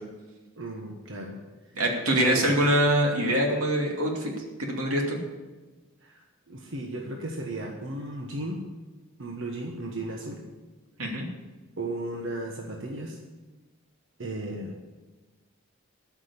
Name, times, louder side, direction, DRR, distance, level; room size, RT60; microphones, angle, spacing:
voice 1, 0.6-1.4 2.2-2.6 6.0-6.2 6.5-8.7 9.2-10.5 11.8-13.2 14.2-14.8, right 2 dB, 60° right, 0 dB, 1.3 m, -35 dB
voice 2, 1.7-4.3 4.6-5.2 11.0-11.3, right 1 dB, 90° right, 0 dB, 2.6 m, -24 dB
13.0 x 6.1 x 8.4 m, 1.2 s
head